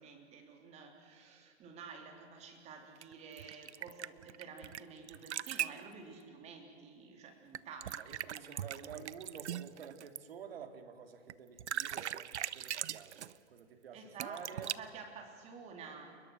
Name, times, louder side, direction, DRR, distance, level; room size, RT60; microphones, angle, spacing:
voice 1, 0.0-8.8 13.9-16.2, right 5 dB, 20° right, 4 dB, 3.3 m, -51 dB
sound 1, 3.0-4.8 5.1-5.8 7.5-10.2 11.3-11.4 11.6-13.4 14.2-14.8, right 10 dB, 75° right, 0.8 m, -40 dB
voice 2, 8.0-14.7, right 7 dB, 55° right, 6 dB, 3.0 m, -50 dB
29.5 x 21.0 x 6.4 m, 2.1 s
hypercardioid pair, 150°, 35 cm